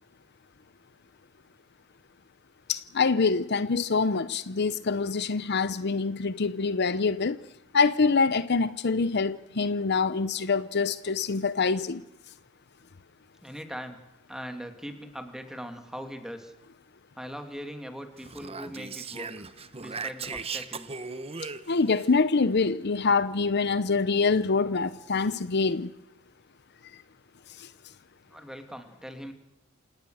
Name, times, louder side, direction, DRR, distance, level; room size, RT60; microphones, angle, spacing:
voice 1, 2.7-7.4 7.7-12.0 21.7-25.9 27.6-27.7, left 4 dB, 55° left, 0.7 m, -25 dB
voice 2, 13.4-14.0 14.3-16.5 17.2-19.5 19.8-21.0 28.3-29.3, equal, 5° right, 2.7 m, -40 dB
Speech, 18.2-22.1, right 5 dB, 30° right, 1.0 m, -38 dB
28.0 x 18.5 x 6.4 m
head